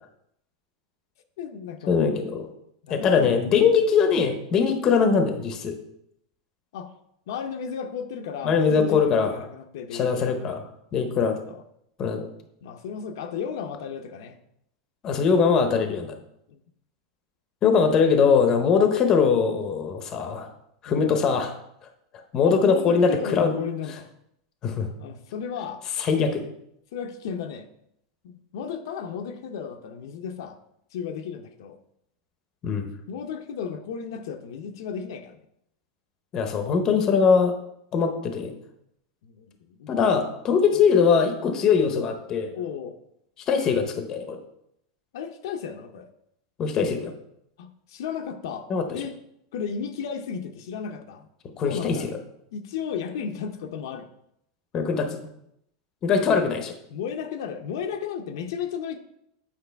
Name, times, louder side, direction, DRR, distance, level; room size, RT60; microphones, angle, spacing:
voice 1, 1.4-2.2 2.8-3.4 6.7-6.9 7.3-10.6 11.2-11.6 12.6-14.4 16.5-16.6 20.9-21.2 22.4-24.1 25.0-26.3 26.9-27.7 28.2-30.6 30.9-31.8 33.1-35.4 39.2-39.9 40.7-40.8 42.5-43.0 45.1-46.1 47.6-49.1 49.5-51.3 51.6-52.1 52.5-54.1 56.2-56.5 56.9-59.0, left 7 dB, 70° left, 6 dB, 0.6 m, -34 dB
voice 2, 1.9-2.5 2.9-5.8 8.4-9.3 9.9-10.6 10.9-11.4 12.0-12.3 15.0-16.1 17.6-20.5 20.8-21.5 22.3-23.5 24.6-24.9 26.0-26.4 32.6-32.9 36.3-37.5 37.9-38.5 39.9-42.5 43.5-44.4 46.6-47.1 48.7-48.8 51.6-52.1 54.7-55.2 56.0-56.6, left 6 dB, 25° left, 6 dB, 0.7 m, -21 dB
8.3 x 4.8 x 3.4 m, 0.75 s
supercardioid pair, 170°, 2 cm